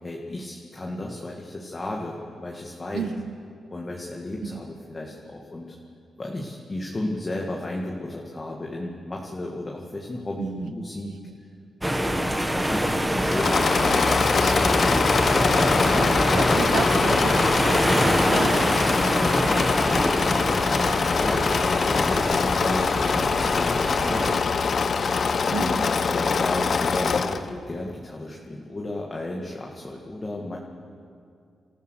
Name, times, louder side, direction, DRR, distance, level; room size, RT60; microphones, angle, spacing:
voice 1, 0.0-3.1 3.7-5.8 6.2-11.2 11.9-15.5 21.0-24.1 25.5-25.7 26.1-30.6, left 1 dB, 30° left, -1 dB, 2.1 m, -33 dB
voice 2, 2.9-3.3 4.4-4.7 10.4-10.7 11.0-11.3 14.4-14.8 15.8-18.8 25.5-25.9, right 6 dB, 85° right, 10 dB, 1.1 m, -33 dB
sound 1, 11.8-24.3, equal, 5° right, 1.7 m, -25 dB
Engine / Mechanisms, 13.2-27.5, left 5 dB, 55° left, 0.9 m, -23 dB
28.0 x 14.5 x 6.6 m, 2.3 s
cardioid pair, 90°, 0 cm